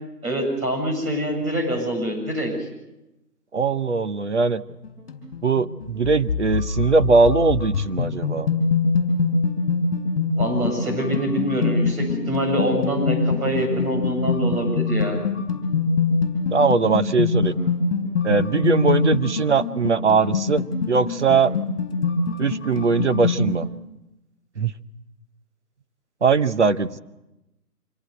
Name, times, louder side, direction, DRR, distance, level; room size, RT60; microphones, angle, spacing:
voice 1, 0.2-2.5 10.3-15.2, right 1 dB, 60° right, 2 dB, 7.8 m, -25 dB
voice 2, 3.5-4.6 5.4-8.5 16.5-17.5 18.2-21.5 22.4-23.7 24.6-24.7 26.2-27.0, right 4 dB, 45° right, 12 dB, 1.0 m, -20 dB
sound 1, 4.7-23.7, left 4 dB, 20° left, 4.9 m, -24 dB
26.0 x 17.5 x 8.1 m, 0.95 s
figure-of-eight pair, 170°, 48 cm